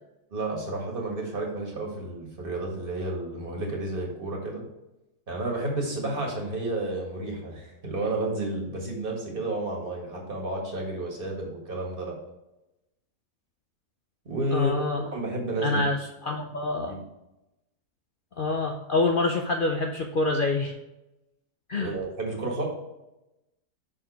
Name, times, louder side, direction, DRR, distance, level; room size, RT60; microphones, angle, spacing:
voice 1, 0.3-4.6 5.3-12.2 14.2-14.8 15.1-15.8 16.9-17.0 21.7-22.6, right 2 dB, 35° right, -1 dB, 1.8 m, -31 dB
voice 2, 14.5-15.0 15.6-17.0 18.4-20.8 21.7-21.9, left 3 dB, 65° left, 3 dB, 0.5 m, -26 dB
6.3 x 4.4 x 4.6 m, 0.95 s
omnidirectional pair, 1.6 m